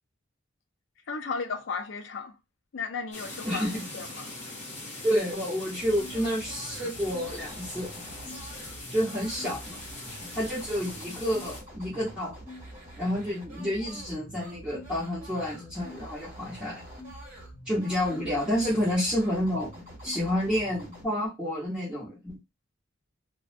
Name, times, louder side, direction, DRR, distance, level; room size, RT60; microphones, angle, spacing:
voice 1, 1.1-2.4 2.7-4.3, left 5 dB, 70° left, 0.4 m, -35 dB
sound 1, 3.1-11.6, left 2 dB, 35° left, 1.0 m, -42 dB
voice 2, 3.4-3.8 5.0-7.9 8.9-9.8 10.3-12.3 13.0-16.8 17.6-19.7 20.0-22.4, equal, 5° right, 1.1 m, -29 dB
sound 2, 5.8-21.1, equal, 40° right, 1.0 m, -45 dB
2.5 x 2.1 x 2.5 m
head